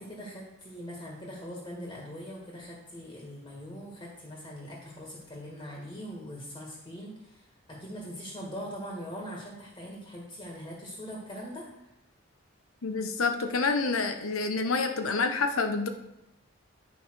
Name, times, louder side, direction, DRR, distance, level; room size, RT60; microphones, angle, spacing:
voice 1, 0.0-11.7, equal, 20° left, -3 dB, 1.9 m, -42 dB
voice 2, 12.8-15.9, left 4 dB, 90° left, 7 dB, 0.9 m, -28 dB
10.0 x 5.4 x 4.7 m, 0.87 s
head